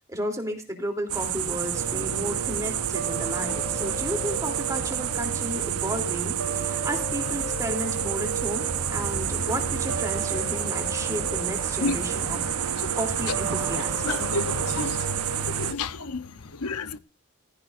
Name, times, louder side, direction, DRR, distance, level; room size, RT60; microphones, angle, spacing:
voice 1, 0.1-12.7 12.9-14.3, right 1 dB, 15° right, 3.3 m, -33 dB
sound 1, 1.1-15.7, right 9 dB, 90° right, 1.2 m, -29 dB
Piano, 1.7-15.4, right 3 dB, 75° right, 4.5 m, -35 dB
voice 2, 14.0-15.0 15.6-16.3 16.6-17.0, left 3 dB, 90° left, 0.9 m, -30 dB
16.5 x 15.5 x 2.6 m
head